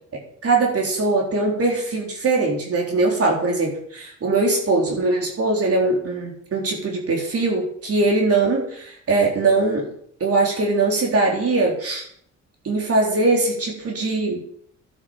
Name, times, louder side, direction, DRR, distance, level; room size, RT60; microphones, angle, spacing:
voice 1, 0.4-9.9 10.2-12.1 12.6-14.4, right 3 dB, 50° right, 0 dB, 3.9 m, -21 dB
11.5 x 11.5 x 7.2 m, 0.67 s
cardioid pair, 90°, 30 cm